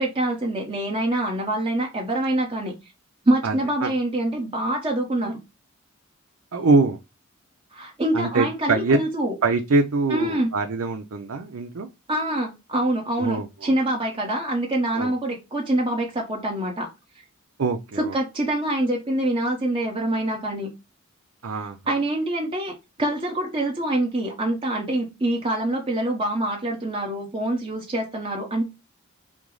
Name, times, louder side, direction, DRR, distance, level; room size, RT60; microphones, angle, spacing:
voice 1, 0.0-2.7 3.2-5.4 7.7-9.3 10.1-10.5 12.1-16.9 18.0-20.7 21.5-22.7 23.0-28.6, right 1 dB, 25° right, 0.9 m, -25 dB
voice 2, 3.4-3.9 6.5-7.0 8.1-9.0 9.4-11.9 13.2-13.7 14.9-15.1 17.6-18.1 21.4-21.8, right 3 dB, 70° right, 0.5 m, -23 dB
6.0 x 2.0 x 3.8 m
head